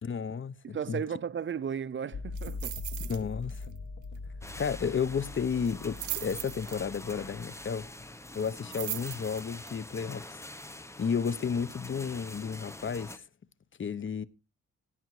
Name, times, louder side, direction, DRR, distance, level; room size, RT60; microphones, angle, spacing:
voice 1, 0.0-1.0 3.0-3.7 4.6-7.9 8.3-10.4 11.0-13.2 13.8-14.3, left 6 dB, 45° left, 1.0 m, -32 dB
voice 2, 0.6-2.8, right 7 dB, 40° right, 0.6 m, -35 dB
sound 1, 2.1-8.1, left 3 dB, 65° left, 1.5 m, -42 dB
sound 2, 2.4-3.2 3.5-3.8 4.0-4.1 5.6-7.1 8.4-9.7 10.2-10.3, right 13 dB, 85° right, 0.6 m, -39 dB
sound 3, 4.4-13.2, left 1 dB, 10° left, 1.1 m, -45 dB
17.0 x 8.9 x 4.8 m
cardioid pair, 90°, 29 cm